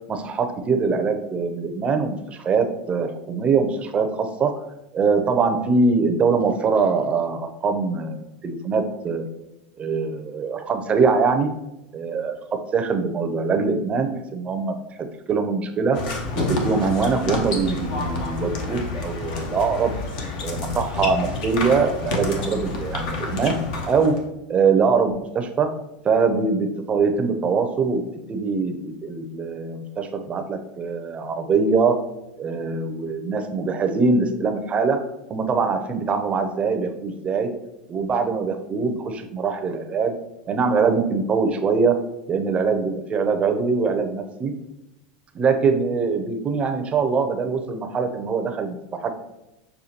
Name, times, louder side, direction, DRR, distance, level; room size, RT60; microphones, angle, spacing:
voice 1, 0.1-4.5 4.9-9.2 9.8-11.5 11.9-12.4 12.7-14.8 15.3-16.0 16.3-19.9 20.4-23.6 23.9-24.1 24.5-25.7 26.0-28.0 28.3-31.9 32.4-35.0 35.3-37.5 37.9-40.1 40.5-42.0 42.3-44.5 45.3-49.1, right 4 dB, 25° right, 6 dB, 0.5 m, -23 dB
sound 1, 15.9-24.2, left 3 dB, 70° left, 0.8 m, -29 dB
6.4 x 2.2 x 2.8 m, 0.92 s
supercardioid pair, 120°, 5 cm